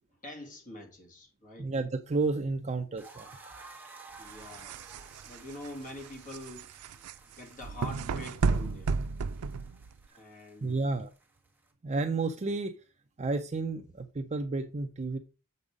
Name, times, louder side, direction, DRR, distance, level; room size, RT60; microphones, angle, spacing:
voice 1, 0.2-1.7 4.2-4.8 5.2-6.7 6.9-7.0 7.4-8.9 10.1-10.9, left 1 dB, 40° left, 2.4 m, -45 dB
voice 2, 1.6-3.3 10.1-10.2 10.6-11.1 11.8-12.7 13.2-15.2, right 3 dB, 30° right, 0.5 m, -31 dB
sound 1, 3.0-11.7, right 3 dB, 10° right, 1.5 m, -54 dB
sound 2, 4.2-10.1, right 4 dB, 85° right, 0.4 m, -33 dB
7.1 x 5.4 x 5.0 m
head